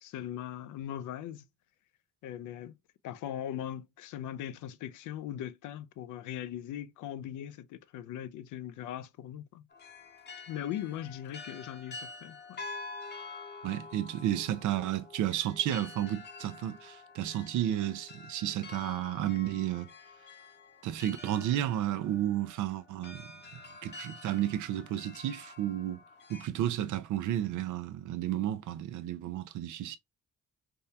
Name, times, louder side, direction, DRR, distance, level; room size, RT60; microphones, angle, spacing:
voice 1, 0.0-1.5 2.2-2.7 3.0-9.6 10.5-12.6, left 11 dB, 80° left, 0.5 m, -40 dB
sound 1, 9.7-26.5, left 3 dB, 35° left, 0.7 m, -48 dB
voice 2, 13.6-19.9 20.8-26.0 26.3-30.0, right 12 dB, 80° right, 0.5 m, -32 dB
3.5 x 2.2 x 2.7 m
cardioid pair, 90°, 30 cm